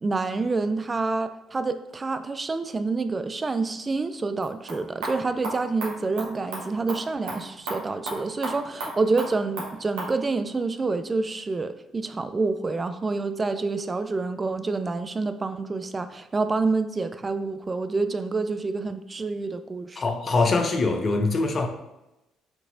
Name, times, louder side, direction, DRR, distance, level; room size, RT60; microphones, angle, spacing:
voice 1, 0.0-20.0, right 3 dB, 30° right, 0.3 m, -27 dB
sound 1, 4.3-10.1, right 2 dB, 80° right, 1.4 m, -36 dB
voice 2, 20.0-21.7, left 3 dB, 45° left, 0.7 m, -23 dB
6.0 x 2.9 x 2.6 m
hypercardioid pair, 55°, 0 cm